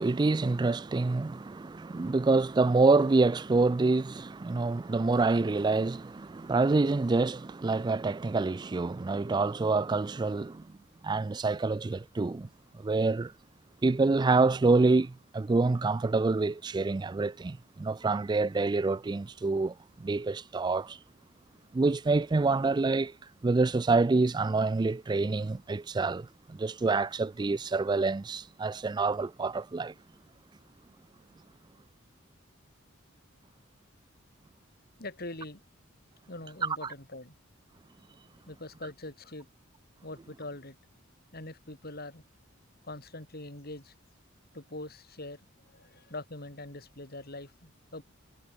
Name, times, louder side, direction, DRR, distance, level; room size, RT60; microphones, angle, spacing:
voice 1, 0.0-10.7 11.0-12.5 12.8-13.3 13.8-21.0 21.7-23.1 23.4-29.9, right 3 dB, 20° right, 0.3 m, -27 dB
voice 2, 35.0-35.6 36.3-37.3 38.5-39.5 40.0-40.8 41.3-42.2 42.8-43.9 44.5-48.0, left 2 dB, 50° left, 6.1 m, -43 dB
head